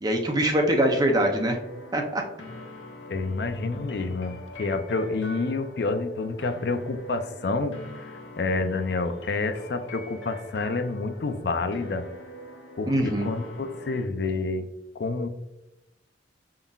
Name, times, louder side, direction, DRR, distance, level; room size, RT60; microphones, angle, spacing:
voice 1, 0.0-1.6 1.9-2.2 12.9-13.3, right 1 dB, 20° right, 2 dB, 0.5 m, -23 dB
sound 1, 1.1-14.0, left 1 dB, 80° left, 0.9 m, -44 dB
voice 2, 3.1-12.0 12.8-14.7 14.9-15.3, left 3 dB, 60° left, 8 dB, 0.4 m, -29 dB
5.2 x 3.7 x 2.3 m, 0.91 s
head